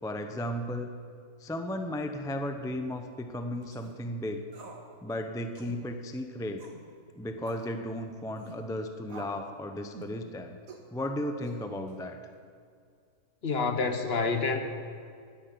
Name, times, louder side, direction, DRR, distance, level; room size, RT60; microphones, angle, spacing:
voice 1, 0.0-0.9 1.4-4.5 5.0-6.7 7.2-10.6 10.9-12.2, left 1 dB, 5° left, 6 dB, 0.4 m, -35 dB
sound 1, 3.6-3.9 4.5-4.9 5.1-5.2 5.5-5.8 6.6-6.8 7.5-7.7 8.4-8.6 9.1-9.5 9.9-10.2 10.7-10.9 11.4-11.9, right 4 dB, 65° right, 1.9 m, -47 dB
voice 2, 13.4-14.6, left 4 dB, 45° left, 7 dB, 1.1 m, -28 dB
10.0 x 9.9 x 9.4 m, 2.2 s
omnidirectional pair, 1.6 m